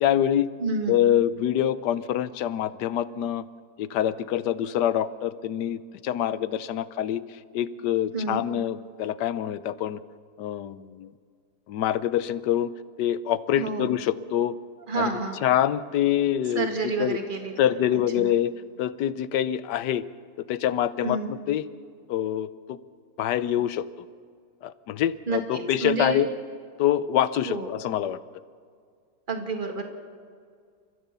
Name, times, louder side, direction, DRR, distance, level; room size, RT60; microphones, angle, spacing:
voice 1, 0.0-0.5 0.9-3.4 3.8-7.2 7.5-10.0 10.4-11.1 11.7-12.7 13.0-14.5 14.9-15.1 15.4-16.7 17.0-17.2 17.6-18.5 18.8-20.0 20.5-21.7 22.1-22.8 23.2-23.8 24.6-26.3 26.8-28.2, left 11 dB, 90° left, 16 dB, 1.4 m, -25 dB
voice 2, 0.6-1.0 8.1-8.4 13.5-14.0 14.9-15.4 16.5-17.5 17.9-18.3 21.0-21.3 25.3-26.3 27.5-27.7 29.3-29.8, right 3 dB, 30° right, 4 dB, 2.1 m, -29 dB
29.0 x 14.5 x 6.9 m, 2.1 s
omnidirectional pair, 1.8 m